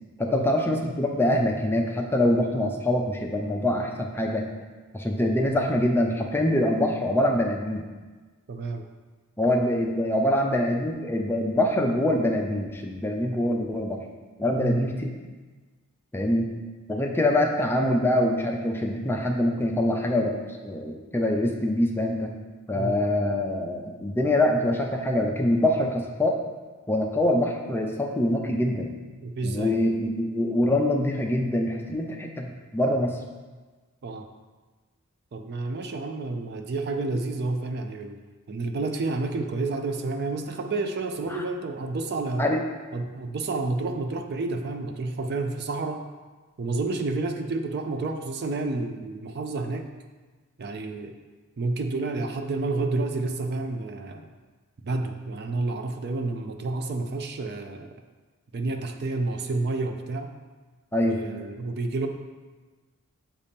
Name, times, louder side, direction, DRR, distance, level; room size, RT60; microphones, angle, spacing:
voice 1, 0.2-4.5 4.9-7.8 9.4-14.0 14.4-15.1 16.1-16.5 16.9-20.4 20.6-22.3 22.7-26.4 26.9-28.9 29.4-33.2 41.3-41.4 42.4-42.6 60.9-61.2, left 1 dB, 10° left, 1 dB, 0.5 m, -24 dB
voice 2, 8.5-8.8 14.6-14.9 22.7-23.0 29.2-29.8 34.0-34.3 35.3-38.2 38.5-42.5 42.9-46.0 46.6-49.9 50.6-51.1 51.6-54.3 54.8-57.9 58.5-60.3 61.0-62.1, right 3 dB, 45° right, 5 dB, 0.4 m, -30 dB
7.3 x 2.8 x 5.2 m, 1.3 s
head